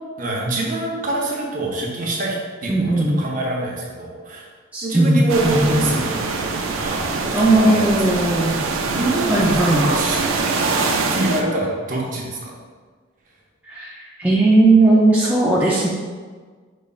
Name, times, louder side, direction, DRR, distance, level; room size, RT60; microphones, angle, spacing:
voice 1, 0.2-2.4 2.6-4.5 4.8-8.0 8.8-12.6, right 2 dB, 40° right, -2 dB, 0.7 m, -25 dB
voice 2, 2.7-3.3 4.7-5.8 7.3-8.6 9.3-9.9 13.7-15.9, right 2 dB, 5° right, -6 dB, 0.3 m, -17 dB
sound 1, 5.3-11.4, right 4 dB, 85° right, 0.4 m, -24 dB
5.1 x 3.2 x 2.3 m, 1.5 s
head